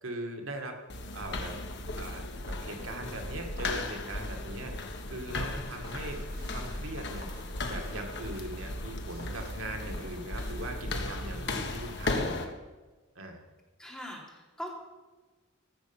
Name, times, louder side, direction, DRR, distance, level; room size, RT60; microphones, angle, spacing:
voice 1, 0.0-0.8 1.1-1.5 2.0-4.7 5.1-6.2 6.5-7.3 7.7-12.5 13.2-13.4, right 1 dB, 90° right, 3 dB, 1.9 m, -40 dB
sound 1, 0.9-12.4, left 2 dB, 60° left, 1.4 m, -36 dB
sound 2, 5.8-8.7 9.1-11.5, right 2 dB, 65° right, 5.4 m, -53 dB
voice 2, 13.8-14.7, equal, 5° left, -4 dB, 3.3 m, -41 dB
15.5 x 7.0 x 7.1 m, 1.2 s
head